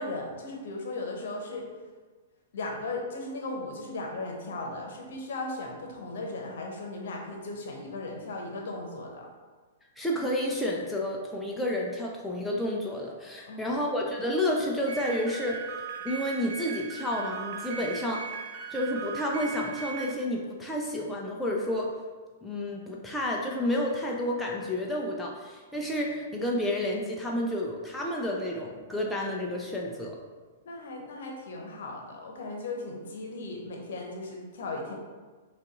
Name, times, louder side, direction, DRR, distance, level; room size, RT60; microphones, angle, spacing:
voice 1, 0.0-1.6 2.5-9.3 13.5-14.0 30.6-34.9, left 2 dB, 60° left, 0 dB, 0.9 m, -37 dB
voice 2, 10.0-15.6 16.0-18.4 18.7-21.9 22.4-30.2, left 1 dB, 5° left, -3 dB, 0.5 m, -30 dB
sound 1, 14.9-20.1, right 6 dB, 45° right, 0.6 m, -38 dB
5.3 x 2.5 x 3.8 m, 1.4 s
figure-of-eight pair, 105°, 0 cm